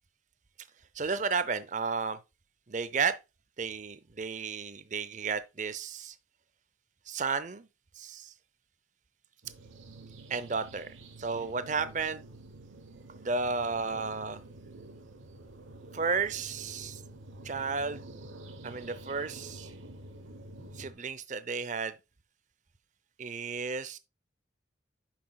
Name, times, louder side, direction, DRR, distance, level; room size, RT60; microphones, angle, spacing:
voice 1, 1.0-2.2 2.7-3.2 3.6-6.1 7.1-7.7 8.0-8.3 10.3-10.9 11.2-12.2 13.2-14.4 15.9-17.0 17.4-18.0 18.6-19.7 20.8-22.0 23.2-24.0, right 5 dB, 40° right, 0.6 m, -33 dB
sound 1, 9.4-20.9, right 2 dB, 85° right, 1.0 m, -48 dB
8.6 x 6.0 x 2.3 m
head